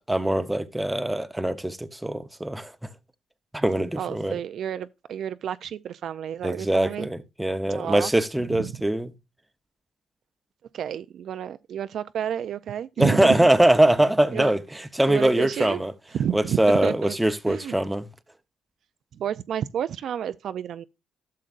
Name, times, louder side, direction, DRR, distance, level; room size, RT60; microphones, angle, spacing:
voice 1, 0.1-2.7 3.5-4.4 6.4-9.1 13.0-14.6 14.9-15.9 16.3-18.1, right 1 dB, 10° right, 0.8 m, -22 dB
voice 2, 4.0-7.1 7.7-8.1 8.5-8.7 10.7-13.5 14.3-14.5 15.1-15.8 16.1-17.2 17.5-17.7 19.1-20.8, right 9 dB, 65° right, 0.4 m, -30 dB
12.5 x 6.5 x 2.5 m
cardioid pair, 90°, 0 cm